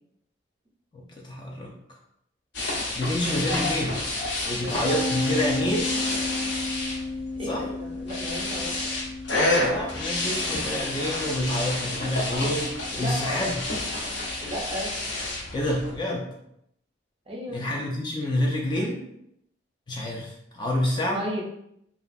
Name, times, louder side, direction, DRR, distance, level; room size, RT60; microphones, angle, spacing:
voice 1, 0.9-1.7 2.7-4.0 4.4-5.9 7.4-7.7 9.6-13.6 15.5-16.3 17.5-19.0 19.9-21.2, left 1 dB, 25° left, -1 dB, 0.3 m, -28 dB
sound 1, 2.5-15.9, left 2 dB, 75° left, 0.7 m, -30 dB
sound 2, 4.9-14.3, left 2 dB, 75° right, 0.4 m, -34 dB
voice 2, 7.4-8.9 12.9-13.5 14.4-14.9 17.3-17.6 21.0-21.4, equal, 30° right, -2 dB, 0.6 m, -34 dB
2.8 x 2.2 x 2.5 m, 0.75 s
head